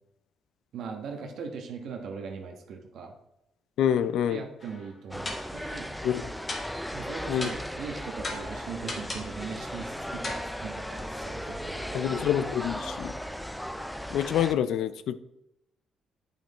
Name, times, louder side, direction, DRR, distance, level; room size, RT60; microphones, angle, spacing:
voice 1, 0.7-3.1 4.2-5.9 6.9-12.2, right 5 dB, 75° right, 3 dB, 1.4 m, -40 dB
voice 2, 3.8-4.4 6.0-6.2 7.3-7.5 11.9-13.1 14.1-15.2, left 10 dB, 80° left, 15 dB, 0.5 m, -26 dB
sound 1, 4.6-4.9 5.2-5.7 6.5-6.9 7.4-7.8 8.2-9.4 10.2-10.5, left 2 dB, 35° left, 2.0 m, -37 dB
sound 2, 5.1-14.5, equal, 5° left, 0.6 m, -37 dB
8.9 x 5.8 x 4.2 m, 0.85 s
cardioid pair, 90°, 0 cm